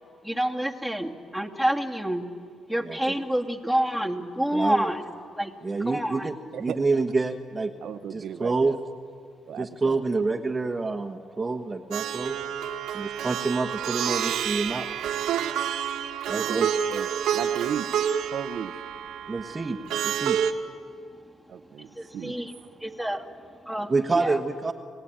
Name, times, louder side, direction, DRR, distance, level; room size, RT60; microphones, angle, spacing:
voice 1, 0.3-2.2 2.7-5.0 5.4-5.6 5.9-6.3 22.0-22.5 22.8-23.2 23.7-23.9 24.2-24.3, right 1 dB, 5° left, 2 dB, 2.3 m, -27 dB
voice 2, 2.8-3.2 4.5-4.9 5.6-6.3 6.6-7.7 8.1-8.8 9.6-12.4 12.9-14.9 16.3-16.7 19.3-19.8 20.0-20.4 23.9-24.7, right 3 dB, 25° right, 6 dB, 1.3 m, -27 dB
voice 3, 7.8-8.8 9.5-10.0 16.3-17.9 18.3-18.7 21.5-22.7, right 8 dB, 70° right, 9 dB, 0.9 m, -35 dB
Plucked string instrument, 11.9-20.5, right 9 dB, 85° right, 1.5 m, -29 dB
29.5 x 19.0 x 9.0 m, 2.2 s
cardioid pair, 90°, 0 cm